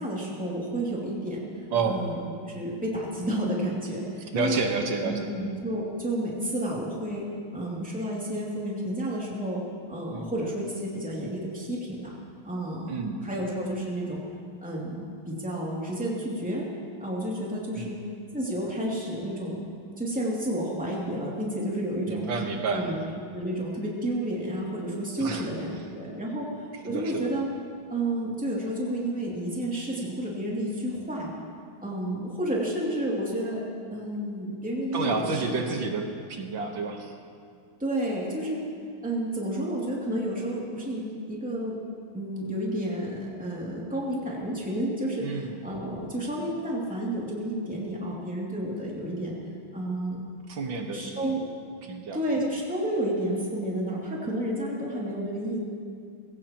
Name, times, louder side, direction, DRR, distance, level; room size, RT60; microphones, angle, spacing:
voice 1, 0.0-1.4 1.9-2.2 2.5-4.6 5.1-9.6 9.9-12.1 12.4-12.9 13.2-14.2 14.6-16.7 17.0-18.0 18.3-19.6 20.0-22.2 22.7-23.0 23.3-26.5 26.8-27.5 27.9-31.3 31.8-33.6 33.9-35.4 37.8-38.6 39.0-41.8 42.1-49.3 49.7-50.2 50.9-51.4 52.1-55.6, right 1 dB, 5° right, -5 dB, 2.4 m, -31 dB
voice 2, 1.7-2.0 4.2-5.3 10.1-10.3 12.9-13.2 17.7-17.9 22.1-23.0 25.2-25.5 26.8-27.2 34.9-37.2 45.2-45.6 50.5-51.3 51.8-52.2, right 4 dB, 65° right, 3 dB, 1.9 m, -30 dB
21.0 x 16.5 x 3.0 m, 2.2 s
omnidirectional pair, 2.3 m